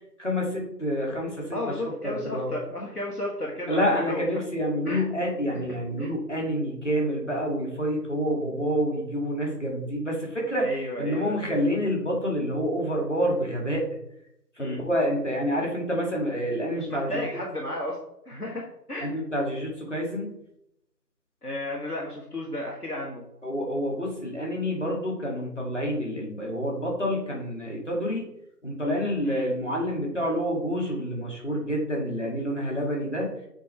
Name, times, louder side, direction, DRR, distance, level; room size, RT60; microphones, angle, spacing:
voice 1, 0.2-1.8 2.0-2.5 3.7-13.8 14.6-17.2 19.0-20.3 23.4-28.2 28.6-33.3, equal, 45° left, -2 dB, 2.1 m, -28 dB
voice 2, 1.5-4.2 4.9-5.0 6.0-6.1 10.6-11.3 14.6-14.8 16.8-18.0 18.3-19.1 21.4-23.2 29.2-29.5, left 1 dB, 65° left, -1 dB, 1.5 m, -33 dB
8.7 x 4.3 x 3.2 m, 0.79 s
figure-of-eight pair, 180°, 49 cm